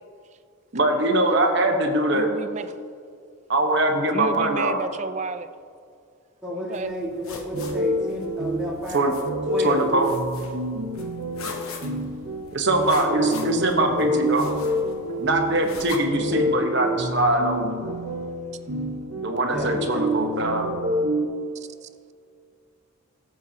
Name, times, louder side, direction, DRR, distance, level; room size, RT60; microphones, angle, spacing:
voice 1, 0.7-2.3 3.5-4.8 8.9-9.2 9.6-10.1 12.5-14.5 15.2-17.8 19.2-20.7, right 1 dB, 55° right, 3 dB, 1.1 m, -22 dB
voice 2, 2.1-2.7 4.1-5.5 6.5-6.9 21.8-21.9, right 4 dB, 35° right, 11 dB, 0.3 m, -31 dB
voice 3, 6.4-9.1 9.5-9.8 13.2-13.4 13.8-13.9 16.1-16.9 19.5-20.3, equal, 5° right, -6 dB, 1.8 m, -32 dB
sound 1, 6.7-16.0, left 4 dB, 85° left, 1.0 m, -42 dB
sound 2, 7.5-21.3, equal, 90° right, 1.0 m, -28 dB
13.5 x 7.4 x 2.8 m, 2.3 s
head